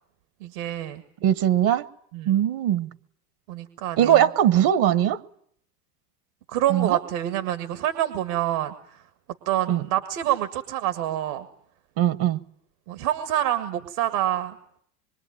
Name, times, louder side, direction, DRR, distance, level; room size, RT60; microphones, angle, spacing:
voice 1, 0.4-1.0 2.1-2.4 3.5-4.3 6.5-9.0 9.5-11.5 12.9-14.6, right 12 dB, 70° right, 2.0 m, -27 dB
voice 2, 1.2-1.9 2.3-2.9 4.0-5.2 6.7-7.0 9.7-9.8 12.0-12.4, right 11 dB, 50° right, 1.3 m, -20 dB
26.0 x 23.5 x 9.2 m
supercardioid pair, 110°, 47 cm